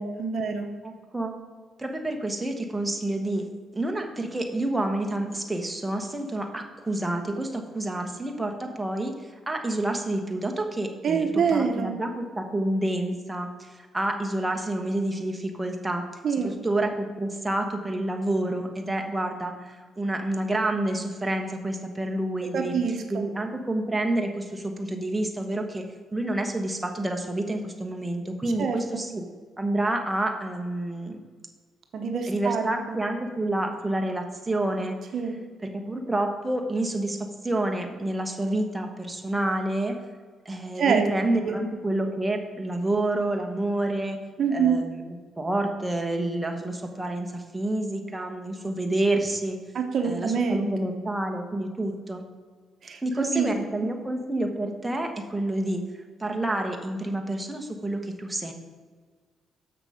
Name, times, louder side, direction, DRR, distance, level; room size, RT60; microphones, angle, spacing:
voice 1, 0.0-0.7 11.0-12.0 16.2-16.5 22.5-23.3 28.6-28.8 31.9-33.0 35.1-35.4 40.8-41.0 41.4-41.6 44.4-44.8 49.7-50.7 52.8-53.0 53.3-53.5, right 6 dB, 60° right, 5 dB, 0.9 m, -26 dB
voice 2, 0.8-1.3 1.8-3.4 3.7-16.0 16.4-25.8 26.1-29.2 29.6-31.2 32.3-35.0 35.6-40.0 40.4-44.2 44.5-45.0 45.4-49.6 50.0-52.2 53.0-58.5, right 1 dB, 10° right, 3 dB, 1.1 m, -28 dB
6.8 x 5.9 x 4.9 m, 1.5 s
cardioid pair, 90°, 0 cm